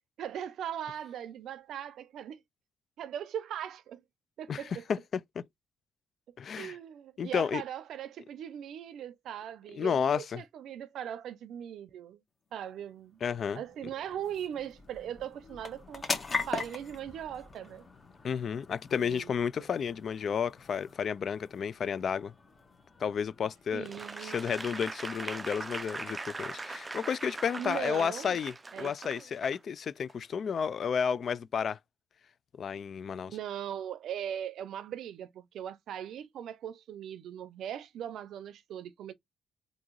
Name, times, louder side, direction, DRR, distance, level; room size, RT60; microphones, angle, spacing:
voice 1, 0.2-2.4 3.0-4.0 4.4-4.8 6.3-12.2 12.5-13.2 13.5-16.1 16.5-17.9 18.9-19.3 19.6-19.7 23.7-24.4 27.6-28.4 28.7-29.3 33.3-39.1, right 10 dB, 75° right, 0.5 m, -39 dB
voice 2, 4.9-5.4 6.4-6.8 7.2-7.6 9.7-10.4 13.2-13.6 18.2-22.3 23.0-23.9 24.2-31.8 32.5-33.3, left 7 dB, 55° left, 0.4 m, -32 dB
sound 1, 12.6-27.5, left 4 dB, 30° left, 1.4 m, -43 dB
Applause / Crowd, 23.8-29.6 30.1-30.2, right 3 dB, 20° right, 0.4 m, -41 dB
3.6 x 2.7 x 3.1 m
cardioid pair, 80°, 0 cm